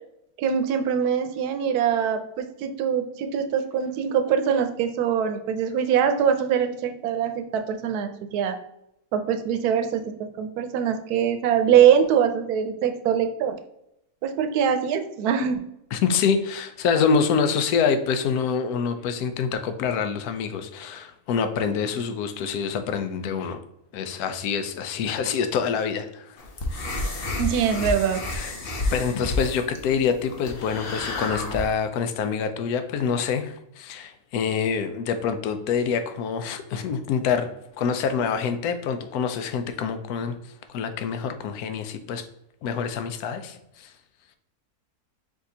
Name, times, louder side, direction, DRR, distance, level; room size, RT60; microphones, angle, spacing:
voice 1, 0.4-8.6 9.1-13.6 14.2-15.6 27.3-28.2, right 8 dB, 80° right, 7 dB, 1.1 m, -23 dB
voice 2, 15.9-23.6 23.9-26.4 28.3-28.5 28.9-37.5 37.8-40.4 40.7-42.2 42.6-43.9, left 6 dB, 80° left, 8 dB, 1.1 m, -26 dB
sound 1, 26.4-31.7, left 2 dB, 50° left, 0.8 m, -30 dB
5.0 x 3.6 x 2.7 m, 0.82 s
omnidirectional pair, 1.6 m